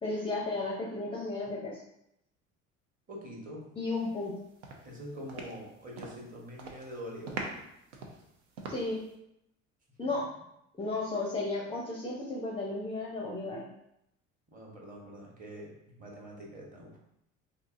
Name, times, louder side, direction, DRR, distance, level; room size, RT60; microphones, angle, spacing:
voice 1, 0.0-1.8 3.8-4.3 8.7-9.0 10.0-10.3 10.8-13.7, left 2 dB, 15° left, -3 dB, 0.6 m, -34 dB
voice 2, 3.1-3.7 4.8-7.4 14.5-15.7 16.0-17.0, equal, 20° right, -2 dB, 1.2 m, -44 dB
sound 1, 4.1-4.3 4.6-6.3 6.5-6.9 7.3-9.1, right 3 dB, 65° right, 0.7 m, -42 dB
4.5 x 2.8 x 2.6 m, 0.80 s
figure-of-eight pair, 60°, 39 cm